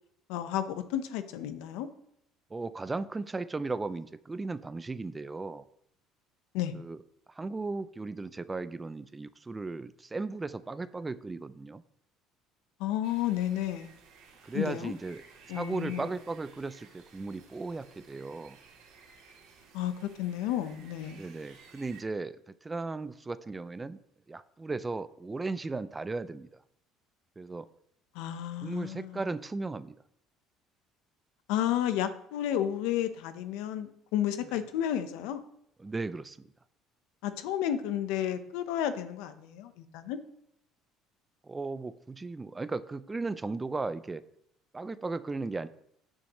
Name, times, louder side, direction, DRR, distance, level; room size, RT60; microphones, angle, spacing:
voice 1, 0.3-1.9 6.5-6.7 12.8-13.9 14.5-14.9 15.5-16.1 19.7-21.2 28.1-29.2 31.5-35.4 37.2-40.2, left 11 dB, 85° left, 10 dB, 0.9 m, -32 dB
voice 2, 2.5-5.7 6.7-7.0 7.3-11.8 14.4-15.2 15.5-18.6 21.1-24.0 24.3-26.5 27.4-27.7 28.6-29.9 35.8-36.5 41.4-44.2 44.7-45.7, right 3 dB, 15° right, 14 dB, 0.4 m, -36 dB
sound 1, 13.0-22.0, right 4 dB, 85° right, 2.9 m, -55 dB
16.5 x 6.3 x 3.1 m, 0.73 s
cardioid pair, 130°, 0 cm